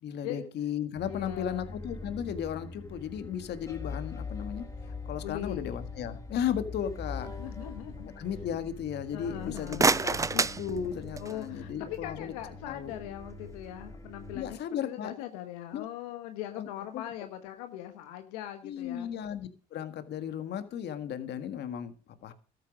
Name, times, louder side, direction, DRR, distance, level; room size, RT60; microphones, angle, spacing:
voice 1, 0.0-7.3 8.0-12.3 12.7-12.9 14.3-15.1 15.7-15.9 16.5-16.7 16.9-17.0 18.6-22.3, left 9 dB, 60° left, 11 dB, 1.6 m, -35 dB
voice 2, 1.0-1.8 5.2-5.7 7.3-8.1 9.1-10.1 11.2-14.6 14.8-19.1, left 12 dB, 90° left, 7 dB, 1.3 m, -41 dB
sound 1, 1.0-14.6, left 3 dB, 15° left, 4.3 m, -42 dB
sound 2, 9.4-11.5, right 4 dB, 15° right, 0.5 m, -28 dB
13.5 x 8.4 x 6.1 m, 0.38 s
supercardioid pair, 75°, 19 cm